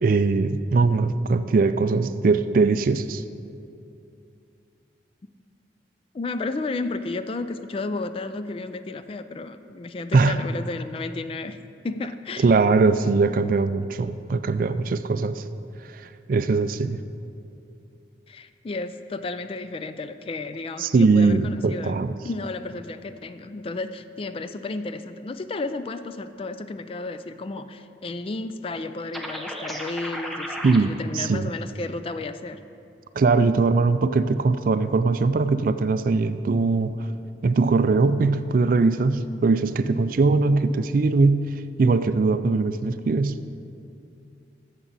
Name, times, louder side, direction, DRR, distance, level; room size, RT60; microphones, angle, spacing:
voice 1, 0.0-3.2 10.1-10.4 12.4-15.4 15.9-16.0 16.3-17.0 20.8-22.2 30.6-31.5 33.2-36.9 37.4-41.5 41.8-43.4, right 4 dB, 50° right, 12 dB, 0.3 m, -21 dB
voice 2, 6.1-11.6 11.8-12.5 18.3-21.9 22.2-32.6, left 3 dB, 30° left, 11 dB, 0.3 m, -32 dB
sound 1, 29.1-30.8, equal, ahead, 0.7 m, -33 dB
13.5 x 7.2 x 4.1 m, 2.6 s
head